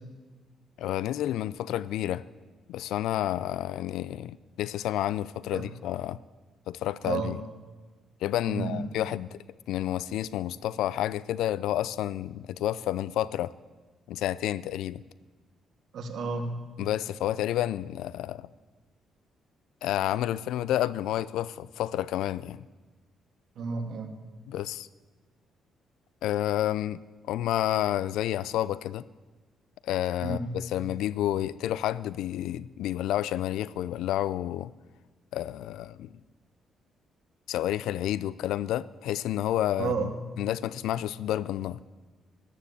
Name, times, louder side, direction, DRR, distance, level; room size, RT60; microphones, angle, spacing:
voice 1, 0.8-2.2 2.7-6.2 6.7-7.4 8.2-13.5 14.1-15.0 16.8-18.5 19.8-22.6 24.5-24.9 26.2-27.0 27.3-29.1 29.8-34.7 35.3-36.2 37.5-40.1 40.4-41.8, left 12 dB, 85° left, 19 dB, 0.4 m, -30 dB
voice 2, 8.5-8.8 15.9-16.5 23.6-24.1 30.2-30.4 39.8-40.1, right 4 dB, 65° right, 4 dB, 2.3 m, -31 dB
13.5 x 12.0 x 8.2 m, 1.3 s
cardioid pair, 90°, 0 cm